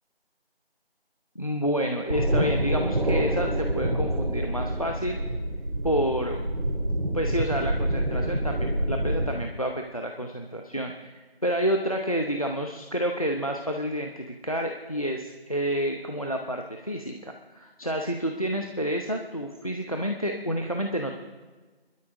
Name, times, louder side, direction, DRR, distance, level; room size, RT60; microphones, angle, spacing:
voice 1, 1.4-5.2 5.8-6.5 7.1-21.1, equal, 35° left, 4 dB, 0.8 m, -29 dB
sound 1, 2.1-9.4, right 1 dB, 55° right, 2.8 m, -27 dB
25.5 x 12.5 x 3.7 m, 1.3 s
figure-of-eight pair, 180°, 31 cm